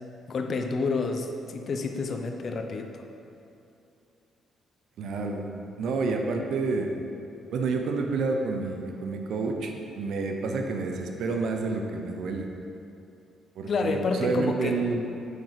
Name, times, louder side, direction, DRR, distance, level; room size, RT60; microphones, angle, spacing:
voice 1, 0.3-3.0 13.7-14.8, left 4 dB, 50° left, 5 dB, 0.8 m, -29 dB
voice 2, 5.0-6.9 7.5-12.5 13.6-15.1, right 4 dB, 75° right, 3 dB, 0.8 m, -29 dB
8.3 x 4.5 x 5.9 m, 2.7 s
cardioid pair, 90°, 0 cm